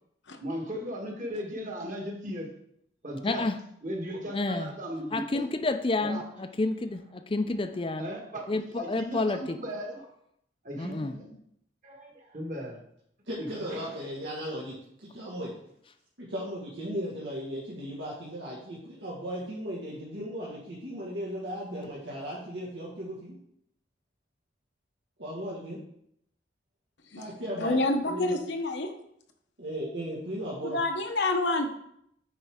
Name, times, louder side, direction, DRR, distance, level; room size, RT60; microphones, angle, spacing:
voice 1, 0.4-2.5 3.0-3.4 3.8-5.4 6.0-6.2 8.0-8.4 8.7-10.0 10.6-11.4 11.8-12.8 13.4-13.9, equal, 45° right, 1.5 m, -37 dB
voice 2, 3.2-3.6 4.3-4.7 5.1-8.1 8.5-9.6 10.7-11.2, left 2 dB, 30° left, 0.5 m, -30 dB
voice 3, 13.3-15.5 16.2-23.4 25.2-25.8 27.2-27.8 28.1-28.3 29.6-30.8, equal, 85° right, 1.7 m, -36 dB
voice 4, 27.1-28.9 30.6-31.7, left 2 dB, 70° left, 0.9 m, -28 dB
9.3 x 4.5 x 3.7 m
head